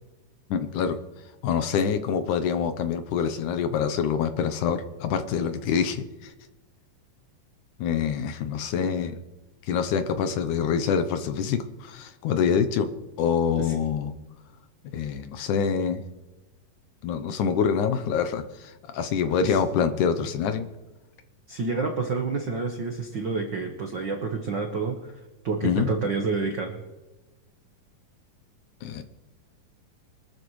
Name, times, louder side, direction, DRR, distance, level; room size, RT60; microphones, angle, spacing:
voice 1, 0.5-1.0 1.4-6.3 7.8-9.2 9.7-12.9 13.2-14.1 14.9-16.0 17.0-20.7 25.6-25.9 28.8-29.0, left 7 dB, 70° left, 9 dB, 2.1 m, -26 dB
voice 2, 21.5-25.1 25.4-26.8, right 4 dB, 70° right, 3 dB, 1.0 m, -29 dB
24.5 x 13.0 x 3.2 m, 1.1 s
omnidirectional pair, 4.0 m